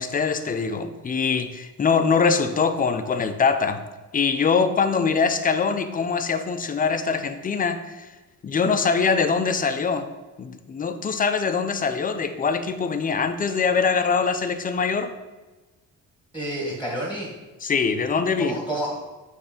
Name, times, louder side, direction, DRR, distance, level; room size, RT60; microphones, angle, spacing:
voice 1, 0.0-3.8 4.1-8.1 8.4-10.1 10.4-15.1 17.6-18.6, left 5 dB, 25° left, 9 dB, 0.5 m, -23 dB
voice 2, 16.3-17.3 18.4-19.0, right 1 dB, 5° right, -4 dB, 1.6 m, -29 dB
6.9 x 3.3 x 5.1 m, 1.2 s
cardioid pair, 120°, 34 cm